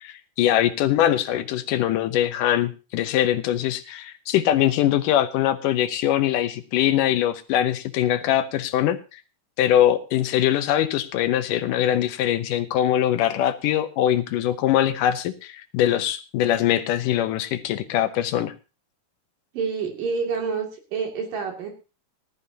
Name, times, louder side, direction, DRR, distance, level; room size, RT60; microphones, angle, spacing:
voice 1, 0.0-9.2 9.6-18.5, left 11 dB, 80° left, 10 dB, 2.5 m, -22 dB
voice 2, 19.5-21.7, right 5 dB, 80° right, 2 dB, 4.2 m, -28 dB
18.5 x 12.5 x 2.8 m, 0.32 s
omnidirectional pair, 3.8 m